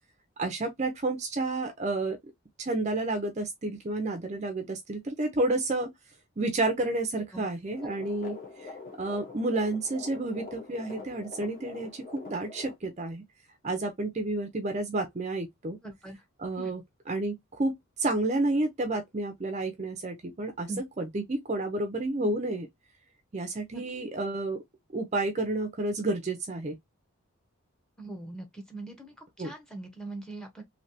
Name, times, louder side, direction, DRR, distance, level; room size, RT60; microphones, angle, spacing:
voice 1, 0.4-2.2 2.6-5.9 6.4-8.7 9.0-13.2 13.6-15.8 16.4-16.8 17.1-22.7 23.3-24.6 24.9-26.8 29.4-29.5, right 2 dB, 35° right, 0.5 m, -30 dB
sound 1, 7.7-12.8, left 3 dB, 40° left, 1.0 m, -44 dB
voice 2, 15.8-16.2 16.6-16.7 20.7-20.8 23.7-23.8 28.0-30.6, right 2 dB, 5° left, 0.8 m, -41 dB
3.2 x 2.8 x 2.7 m
head